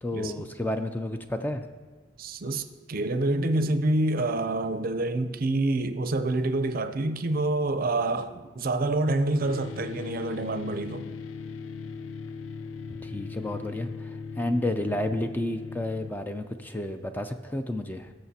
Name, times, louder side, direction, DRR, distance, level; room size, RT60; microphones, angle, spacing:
voice 1, 0.0-1.7 12.9-18.1, left 1 dB, 10° left, 0.3 m, -31 dB
voice 2, 2.2-11.1, right 2 dB, 50° right, 0.5 m, -27 dB
sound 1, 9.4-16.1, left 5 dB, 90° left, 0.4 m, -38 dB
19.5 x 6.6 x 2.8 m
head